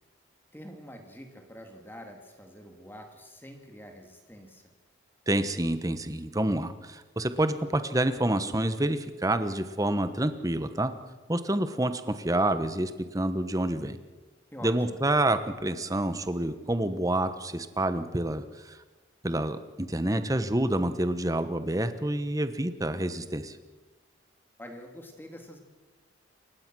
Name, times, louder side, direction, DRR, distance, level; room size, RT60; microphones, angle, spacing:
voice 1, 0.5-4.7 14.5-15.0 24.6-25.6, equal, 10° left, 4 dB, 2.5 m, -46 dB
voice 2, 5.3-10.9 11.3-14.0 14.6-18.8 19.2-23.6, right 1 dB, 15° right, 10 dB, 1.1 m, -28 dB
28.5 x 16.0 x 6.2 m, 1.3 s
head